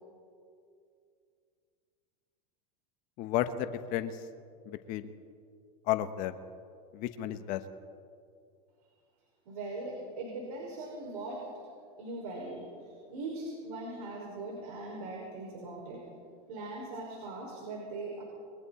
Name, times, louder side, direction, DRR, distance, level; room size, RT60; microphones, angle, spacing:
voice 1, 3.2-4.2 4.7-5.1 5.9-6.4 6.9-7.6, left 12 dB, 45° left, 9 dB, 1.1 m, -32 dB
voice 2, 9.5-11.4 12.0-16.0 16.5-18.2, right 2 dB, 75° right, -2 dB, 5.9 m, -40 dB
29.0 x 22.5 x 4.3 m, 2.3 s
supercardioid pair, 135°, 19 cm